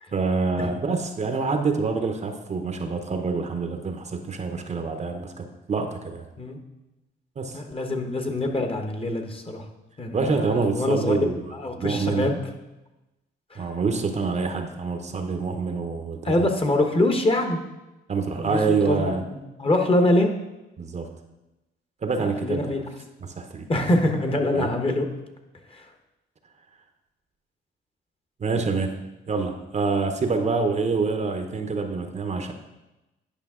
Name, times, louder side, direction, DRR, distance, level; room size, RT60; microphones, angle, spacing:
voice 1, 0.1-6.3 7.4-7.6 10.1-11.4 11.7-12.3 13.6-16.5 18.1-19.2 20.8-21.1 22.0-22.7 23.2-23.7 24.5-24.7 28.4-29.0 29.3-32.5, right 4 dB, 35° right, 6 dB, 0.8 m, -26 dB
voice 2, 7.5-9.6 10.0-11.2 11.5-12.4 13.5-13.7 16.2-17.6 18.4-20.3 22.2-22.8 23.7-25.1 25.7-25.9, left 1 dB, 30° left, 4 dB, 1.1 m, -24 dB
10.0 x 5.1 x 3.7 m, 1.0 s
cardioid pair, 90°, 20 cm